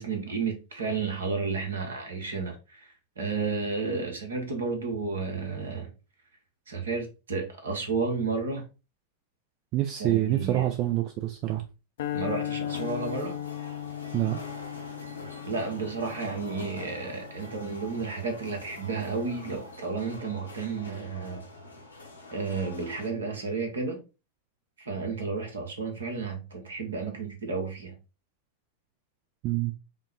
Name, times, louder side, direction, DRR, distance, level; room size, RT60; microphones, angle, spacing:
voice 1, 0.0-5.9 6.7-8.6 10.0-10.7 12.1-13.3 15.4-21.4 22.3-24.0 24.8-27.9, right 4 dB, 70° right, 1.1 m, -32 dB
voice 2, 9.7-11.6 14.1-14.4 29.4-29.7, right 14 dB, 40° right, 0.4 m, -26 dB
sound 1, 12.0-18.3, left 12 dB, 55° left, 0.4 m, -37 dB
sound 2, 12.6-23.1, left 2 dB, 85° left, 0.9 m, -45 dB
5.2 x 2.1 x 3.4 m
figure-of-eight pair, 90°, 0 cm